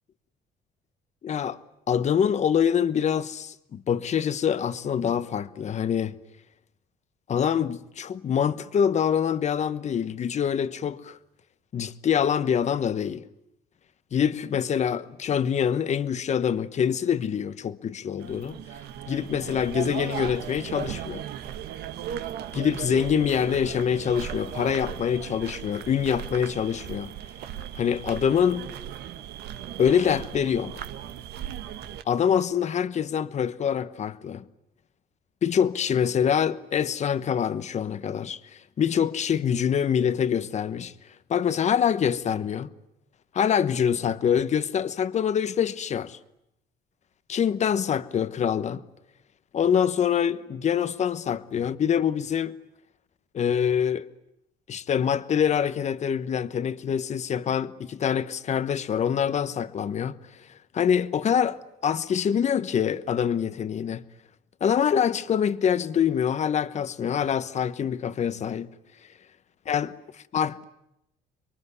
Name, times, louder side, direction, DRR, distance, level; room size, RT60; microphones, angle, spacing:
voice 1, 1.2-1.6 1.9-6.1 7.3-11.2 11.7-13.2 14.1-18.6 19.1-21.2 22.5-27.1 27.8-28.7 29.8-30.8 32.1-34.4 35.4-38.4 38.8-40.9 41.3-42.7 43.3-46.2 47.3-48.8 49.5-52.6 53.3-54.1 54.7-60.2 60.7-64.0 64.6-68.7 69.7-69.9 70.3-70.6, left 8 dB, 45° left, 1.1 m, -25 dB
sound 1, 18.2-32.0, right 10 dB, 75° right, 1.6 m, -37 dB
26.5 x 23.0 x 9.6 m
cardioid pair, 110°, 17 cm